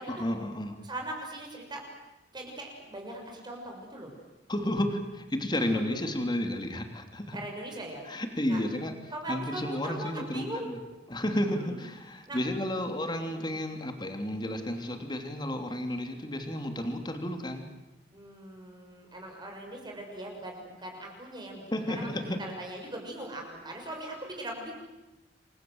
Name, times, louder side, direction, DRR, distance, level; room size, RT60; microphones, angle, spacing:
voice 1, 0.1-0.8 4.5-7.4 8.1-8.9 9.3-10.8 11.1-17.7 21.7-22.4, left 1 dB, 25° left, 5 dB, 3.2 m, -32 dB
voice 2, 0.8-1.8 2.3-4.1 5.5-5.8 7.3-8.0 8.5-8.6 9.1-10.8 11.5-11.7 12.3-12.4 12.8-12.9 13.3-13.4 18.1-24.7, right 1 dB, 25° right, 1 dB, 6.1 m, -40 dB
29.0 x 24.0 x 8.0 m, 0.99 s
head